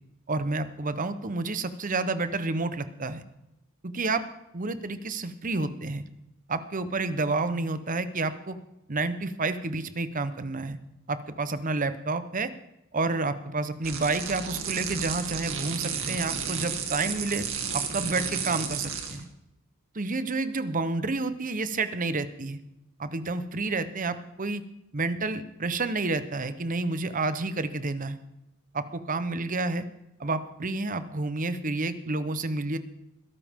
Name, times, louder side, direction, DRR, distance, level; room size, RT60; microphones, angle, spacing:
voice 1, 0.3-3.2 3.8-4.2 4.5-6.0 6.5-8.6 8.9-10.8 11.1-12.5 12.9-17.5 17.7-19.3 19.9-22.6 23.0-24.6 24.9-28.2 28.7-29.8 30.2-32.8, right 3 dB, 35° right, 12 dB, 0.9 m, -29 dB
sound 1, 13.8-19.2, right 6 dB, 65° right, 2.3 m, -32 dB
21.5 x 12.5 x 3.7 m, 0.89 s
head